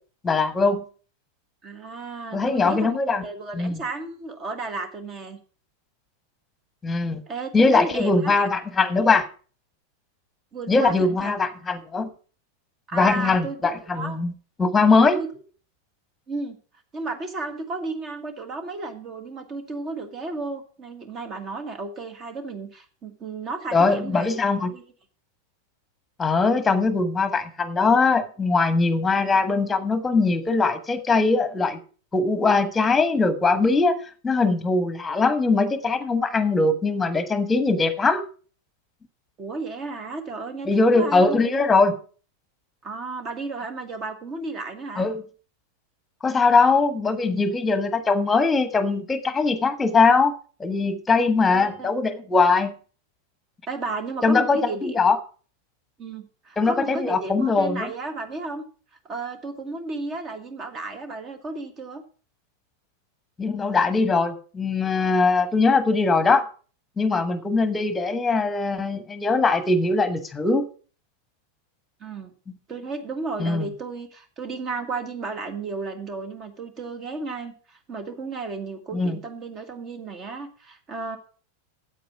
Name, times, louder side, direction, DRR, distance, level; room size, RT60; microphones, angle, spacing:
voice 1, 0.2-0.8 2.3-3.2 3.5-3.8 6.8-7.2 7.5-9.3 10.7-12.1 12.9-14.3 14.6-15.2 23.7-24.7 26.2-31.8 32.1-33.9 34.2-38.2 40.7-42.0 45.0-45.2 46.2-50.3 50.6-52.7 54.2-55.2 56.6-57.9 63.4-66.5 67.0-70.7 73.4-73.7 78.9-79.2, left 3 dB, 15° left, 12 dB, 1.3 m, -21 dB
voice 2, 1.6-5.4 7.3-8.5 10.5-11.3 12.9-13.6 13.9-14.2 15.1-15.3 16.3-16.6 16.9-24.3 24.7-24.8 39.4-40.7 40.9-41.4 42.8-45.1 51.1-51.9 53.7-55.0 56.0-58.6 59.1-62.0 72.0-72.3 72.7-81.2, right 3 dB, 30° right, 9 dB, 1.7 m, -33 dB
8.5 x 8.2 x 5.9 m, 0.40 s
figure-of-eight pair, 90°, 0 cm